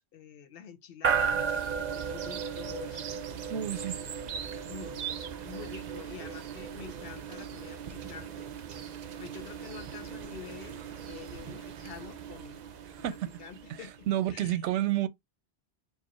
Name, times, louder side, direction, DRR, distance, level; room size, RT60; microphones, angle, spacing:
voice 1, 0.0-1.5 1.9-3.1 3.6-8.5 9.2-12.6 13.0-14.7, left 7 dB, 65° left, 0.8 m, -47 dB
sound 1, 1.0-14.0, right 7 dB, 55° right, 0.5 m, -36 dB
voice 2, 3.5-3.9 12.9-13.1 13.7-13.8 14.1-15.1, right 12 dB, 90° right, 0.9 m, -29 dB
4.7 x 2.1 x 2.9 m
omnidirectional pair, 1.1 m